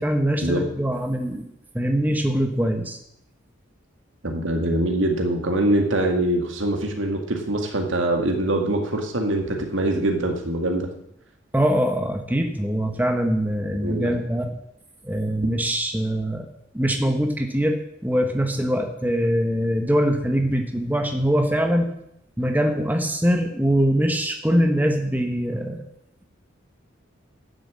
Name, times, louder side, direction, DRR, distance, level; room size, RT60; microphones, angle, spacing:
voice 1, 0.0-1.4 1.7-3.0 11.5-14.6 15.0-16.4 16.7-17.8 18.0-21.9 22.4-25.8, equal, 10° right, 4 dB, 1.0 m, -23 dB
voice 2, 4.2-10.9 13.8-14.2, right 1 dB, 75° right, 3 dB, 2.0 m, -23 dB
10.5 x 7.4 x 7.5 m, 0.78 s
head